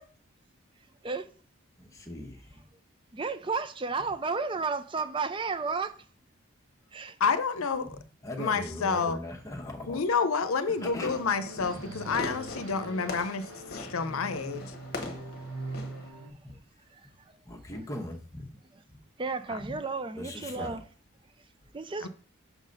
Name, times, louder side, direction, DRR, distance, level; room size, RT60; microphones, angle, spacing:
voice 1, 1.8-2.6 8.2-10.0 10.7-11.2 11.7-11.8 16.4-16.5 17.0-17.1 17.4-18.5 18.9-19.0 19.6-19.7 20.2-20.8, left 1 dB, 15° left, 1.0 m, -39 dB
voice 2, 3.1-6.1 6.9-7.2 15.9-16.1 16.9-17.4 19.2-20.8 21.7-22.1, right 4 dB, 25° right, 0.4 m, -33 dB
voice 3, 7.2-7.9 8.4-9.2 9.9-14.7 19.5-19.6 22.0-22.1, left 5 dB, 85° left, 0.7 m, -29 dB
sound 1, 10.8-16.3, right 2 dB, 75° right, 1.0 m, -42 dB
Fireworks, 10.9-16.1, left 2 dB, 45° left, 1.1 m, -41 dB
6.0 x 3.9 x 5.3 m
head